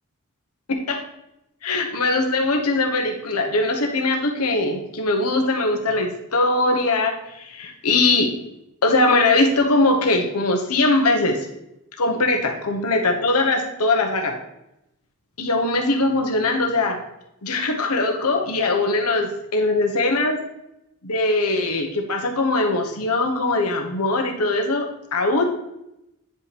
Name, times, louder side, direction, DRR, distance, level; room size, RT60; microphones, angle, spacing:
voice 1, 0.7-1.0 1.6-8.3 8.8-11.4 12.0-14.4 15.4-17.0 17.4-20.4 21.0-25.5, left 2 dB, 85° left, 3 dB, 1.2 m, -21 dB
9.1 x 5.6 x 3.4 m, 0.85 s
head